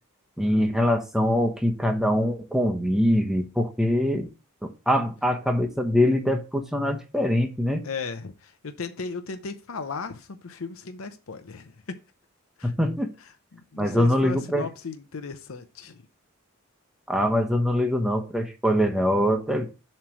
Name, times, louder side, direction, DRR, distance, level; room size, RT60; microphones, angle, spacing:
voice 1, 0.4-4.3 4.6-7.9 12.6-13.1 13.8-14.7 17.1-19.7, equal, ahead, 0.9 m, -23 dB
voice 2, 7.8-11.7 12.6-12.7 13.5-16.1, left 4 dB, 80° left, 0.7 m, -36 dB
7.3 x 3.2 x 6.0 m
head